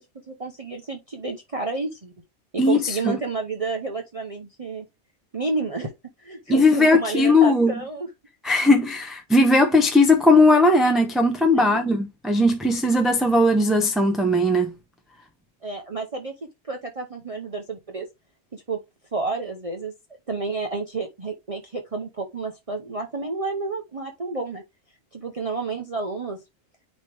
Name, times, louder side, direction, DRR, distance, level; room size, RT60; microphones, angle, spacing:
voice 1, 0.3-2.1 2.5-4.8 5.3-5.9 6.2-8.1 11.5-11.9 15.6-16.3 16.6-18.1 18.5-18.8 19.1-19.9 20.3-24.6 25.1-26.4, right 3 dB, 30° right, 0.8 m, -30 dB
voice 2, 2.6-3.1 6.5-7.7 8.4-14.7, left 2 dB, ahead, 0.6 m, -18 dB
9.3 x 3.1 x 3.3 m
omnidirectional pair, 1.3 m